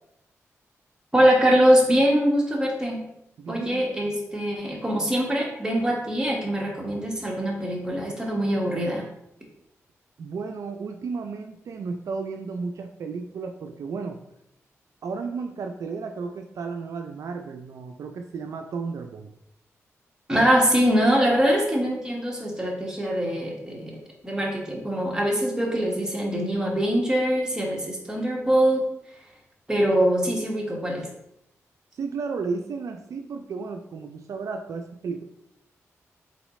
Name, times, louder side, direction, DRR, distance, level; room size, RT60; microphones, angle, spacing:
voice 1, 1.1-3.0 3.5-9.0 20.3-24.0 24.2-28.8 29.7-31.1, equal, 15° right, -2 dB, 1.4 m, -23 dB
voice 2, 3.4-3.9 10.2-14.2 15.0-19.3 31.9-35.2, right 4 dB, 75° right, 5 dB, 0.4 m, -33 dB
4.0 x 4.0 x 3.1 m, 0.79 s
cardioid pair, 65°, 6 cm